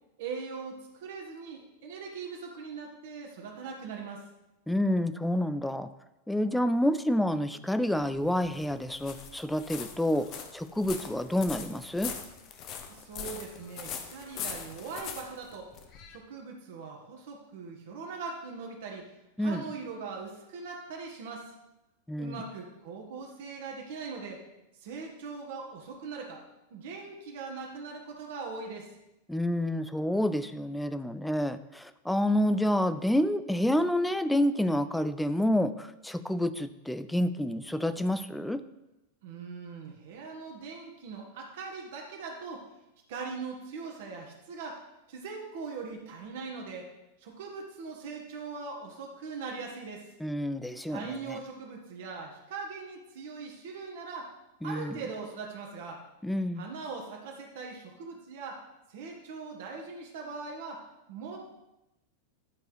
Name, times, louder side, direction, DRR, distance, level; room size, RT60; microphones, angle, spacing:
voice 1, 0.2-4.2 12.9-15.7 16.1-19.0 19.4-21.5 22.2-24.4 24.8-26.4 26.7-28.9 39.2-42.6 43.1-44.8 45.1-46.9 47.2-50.1 50.9-54.3 54.6-56.0 56.6-58.6 58.9-60.8 61.1-61.4, right 4 dB, 55° right, 1 dB, 1.4 m, -41 dB
voice 2, 4.7-5.9 6.3-10.3 10.5-12.1 19.4-19.7 22.1-22.4 29.3-38.6 50.2-51.4 54.6-55.0 56.2-56.7, left 1 dB, 5° left, 11 dB, 0.4 m, -28 dB
sound 1, 8.0-16.2, left 7 dB, 35° left, 0.9 m, -42 dB
10.5 x 4.7 x 4.7 m, 0.94 s
figure-of-eight pair, 90°, 0 cm